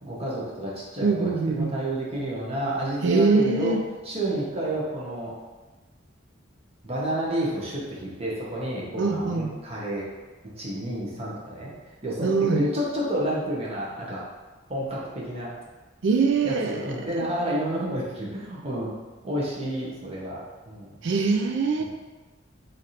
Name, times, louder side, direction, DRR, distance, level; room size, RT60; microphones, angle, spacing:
voice 1, 0.0-3.7 4.0-5.3 6.8-10.1 10.6-11.7 12.0-14.2 14.7-15.5 16.4-18.9 19.2-21.0 21.8-21.9, right 1 dB, 30° right, -5 dB, 0.9 m, -30 dB
voice 2, 1.0-1.7 3.0-3.8 9.0-9.5 12.2-12.7 16.0-16.8 21.0-21.8, right 4 dB, 65° right, 3 dB, 0.4 m, -23 dB
3.3 x 2.6 x 4.1 m, 1.3 s
head